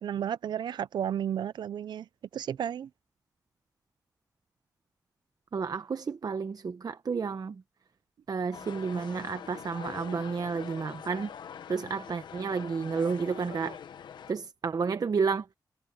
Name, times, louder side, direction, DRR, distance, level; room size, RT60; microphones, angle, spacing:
voice 1, 0.0-2.9, right 9 dB, 85° right, 0.5 m, -33 dB
voice 2, 5.5-7.6 8.3-11.3 11.7-13.8 14.3-15.5, right 5 dB, 60° right, 0.9 m, -31 dB
sound 1, 8.5-14.3, left 8 dB, 90° left, 1.0 m, -44 dB
cardioid pair, 55°, 7 cm